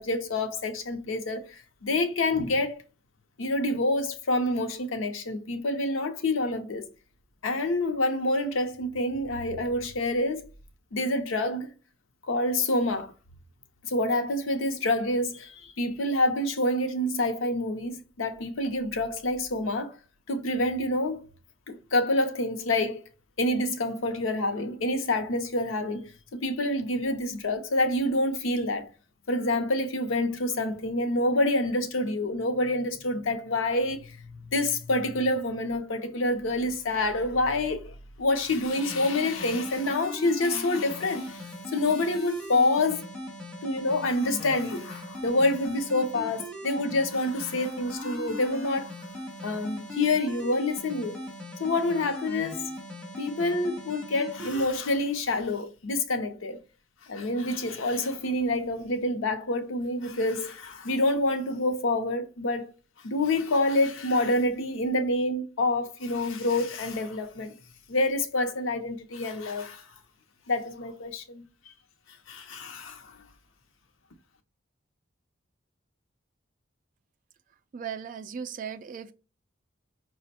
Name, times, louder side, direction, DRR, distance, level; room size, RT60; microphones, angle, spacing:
voice 1, 0.0-2.8 3.4-6.8 7.4-10.4 10.9-11.7 12.3-13.1 13.8-20.0 20.3-21.2 21.7-23.0 23.4-28.9 29.3-43.0 43.6-48.9 49.4-51.2 51.6-52.7 53.2-56.6 57.0-62.7 63.0-67.6 67.9-69.8 70.5-71.4 72.3-73.2, left 2 dB, 85° left, 0.6 m, -27 dB
sound 1, 38.6-54.6, left 1 dB, 5° left, 0.8 m, -39 dB
voice 2, 77.7-79.1, right 7 dB, 40° right, 0.3 m, -37 dB
5.0 x 2.1 x 4.1 m
head